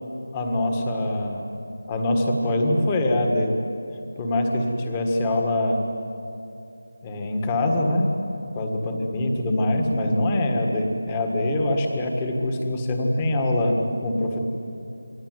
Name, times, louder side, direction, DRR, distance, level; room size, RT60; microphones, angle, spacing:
voice 1, 0.3-1.5 1.9-3.5 4.2-5.8 7.0-8.1 8.6-14.4, left 1 dB, 10° left, 2 dB, 1.7 m, -23 dB
28.5 x 22.0 x 9.5 m, 2.6 s
figure-of-eight pair, 180°, 0 cm